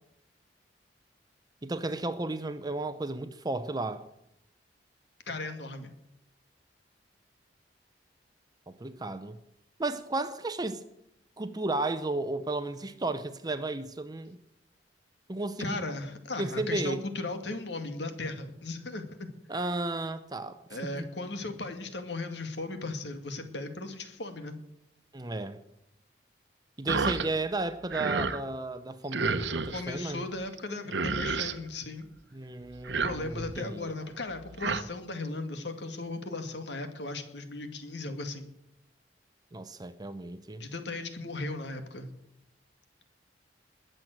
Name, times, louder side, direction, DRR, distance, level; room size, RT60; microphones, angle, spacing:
voice 1, 1.6-4.0 8.7-9.4 9.8-10.8 11.4-14.4 15.3-15.8 16.4-17.0 19.5-20.6 20.9-21.1 25.1-25.6 26.8-30.2 32.3-33.9 39.5-40.6, right 2 dB, 20° right, 0.7 m, -33 dB
voice 2, 5.3-5.9 15.6-19.3 20.7-24.6 29.7-32.1 33.0-38.5 40.6-42.1, left 2 dB, 70° left, 2.1 m, -37 dB
sound 1, 26.9-27.3 27.6-28.4 29.1-29.8 30.6-30.7 30.9-31.6 32.7-33.6 34.3-34.8, right 4 dB, 75° right, 1.0 m, -31 dB
20.5 x 7.7 x 7.9 m
head